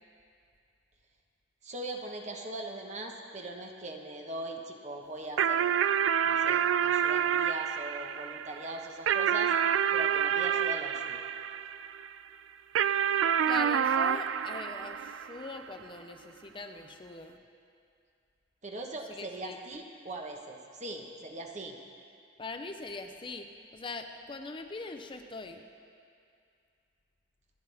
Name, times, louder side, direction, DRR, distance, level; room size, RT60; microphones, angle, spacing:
voice 1, 1.6-5.7 6.2-9.5 9.9-11.2 18.6-21.8, right 2 dB, 40° right, 2 dB, 1.2 m, -40 dB
sound 1, 5.4-12.1 12.8-15.6, right 8 dB, 80° right, 0.3 m, -28 dB
voice 2, 13.4-17.4 19.1-19.6 22.4-25.6, left 3 dB, 25° left, 5 dB, 0.6 m, -42 dB
26.5 x 10.0 x 3.5 m, 2.4 s
head